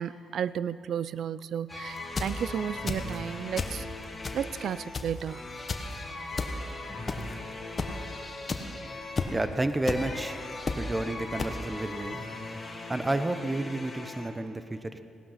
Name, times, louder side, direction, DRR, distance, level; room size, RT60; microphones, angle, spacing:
voice 1, 0.0-3.9 4.3-5.4 8.6-8.7, right 9 dB, 65° right, 17 dB, 0.4 m, -33 dB
sound 1, 1.7-14.3, left 2 dB, 20° left, 1.9 m, -40 dB
sound 2, 2.0-2.4 2.9-3.2 3.6-3.8 4.2-4.6 4.9-5.2 5.7-5.9 6.4-6.5 7.1-7.3 7.8-7.9 8.5-8.6 9.2-9.3 9.9-10.0 10.7-10.8 11.4-11.5, left 4 dB, 35° left, 1.1 m, -31 dB
voice 2, 9.3-10.4 10.8-12.2 12.9-15.0, right 2 dB, 15° right, 10 dB, 0.8 m, -30 dB
17.0 x 11.5 x 5.8 m, 2.6 s
cardioid pair, 90°, 0 cm